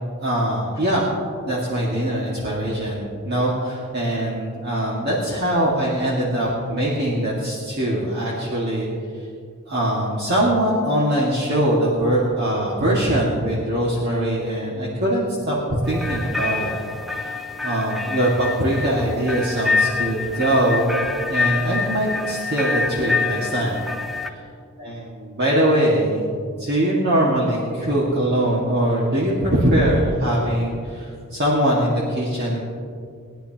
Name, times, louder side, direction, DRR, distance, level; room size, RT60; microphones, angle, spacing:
voice 1, 0.2-1.0 1.4-8.9 9.7-16.7 17.1-17.4 17.6-21.0 21.3-23.8 24.8-26.3 26.6-32.6, right 1 dB, 50° right, -5 dB, 1.9 m, -22 dB
sound 1, 15.8-24.3, left 4 dB, ahead, 0.6 m, -26 dB
20.5 x 10.5 x 2.9 m, 2.3 s
head